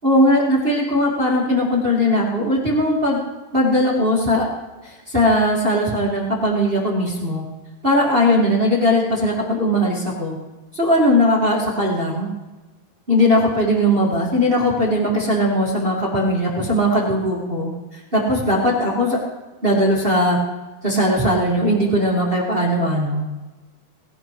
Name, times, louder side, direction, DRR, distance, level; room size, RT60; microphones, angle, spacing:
voice 1, 0.0-3.2 3.5-4.5 4.8-7.4 7.8-10.4 10.7-12.3 13.1-17.7 18.1-19.2 19.6-20.4 20.8-23.2, equal, 25° right, -3 dB, 1.2 m, -19 dB
19.0 x 16.5 x 3.2 m, 1.2 s
omnidirectional pair, 4.5 m